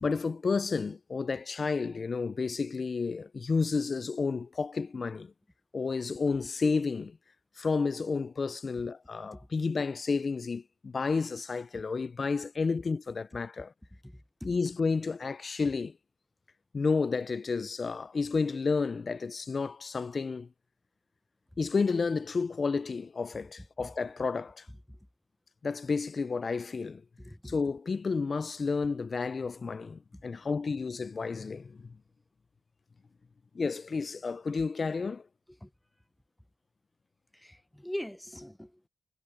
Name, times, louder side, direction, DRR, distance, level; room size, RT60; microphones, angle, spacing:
voice 1, 0.0-5.3 5.7-7.2 7.6-13.7 14.4-15.9 16.7-20.5 21.6-24.7 25.6-27.0 27.4-32.0 33.5-35.2, left 4 dB, 45° left, 0.4 m, -31 dB
voice 2, 27.2-27.5 30.1-30.2 35.6-35.7 37.3-38.9, left 1 dB, 5° left, 0.8 m, -41 dB
cardioid pair, 75°, 0 cm